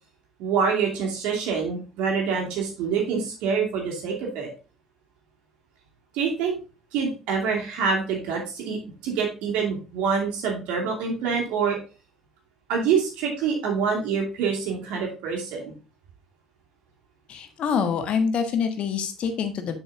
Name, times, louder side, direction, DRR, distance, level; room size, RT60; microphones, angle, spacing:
voice 1, 0.4-4.5 6.1-6.6 6.9-11.8 12.7-15.7, right 6 dB, 70° right, 0 dB, 2.6 m, -26 dB
voice 2, 17.3-19.8, left 6 dB, 60° left, 8 dB, 1.4 m, -26 dB
7.0 x 5.5 x 3.8 m, 0.33 s
hypercardioid pair, 55°, 2 cm